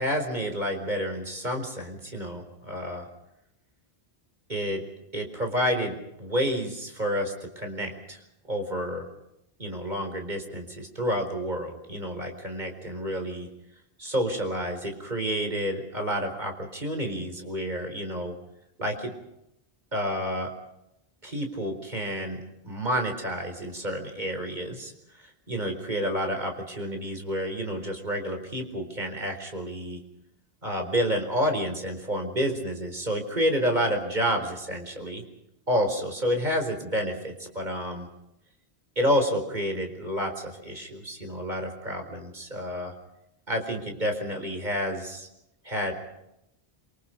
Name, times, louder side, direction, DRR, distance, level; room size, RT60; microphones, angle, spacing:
voice 1, 0.0-3.1 4.5-4.8 5.1-8.2 8.5-9.1 9.6-13.5 14.0-18.4 18.8-19.1 19.9-20.5 21.2-30.0 30.6-35.2 35.7-38.1 39.0-42.9 43.5-45.3 45.6-45.9, equal, 45° right, 4 dB, 4.7 m, -29 dB
27.0 x 25.5 x 5.2 m, 0.85 s
omnidirectional pair, 1.0 m